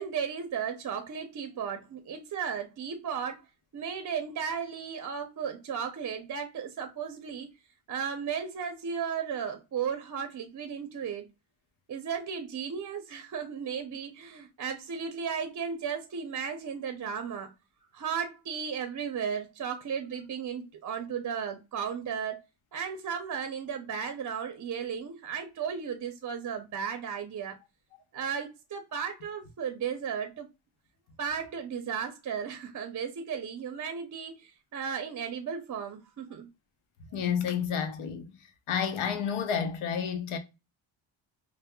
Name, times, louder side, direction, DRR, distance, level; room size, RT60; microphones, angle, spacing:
voice 1, 0.0-3.4 3.7-7.5 7.9-11.3 11.9-17.5 17.9-22.4 22.7-27.6 28.1-30.5 31.2-36.5, right 7 dB, 40° right, 0.5 m, -35 dB
voice 2, 37.1-38.3 38.7-40.4, left 7 dB, 85° left, 0.9 m, -30 dB
5.3 x 2.1 x 2.2 m
cardioid pair, 110°, 48 cm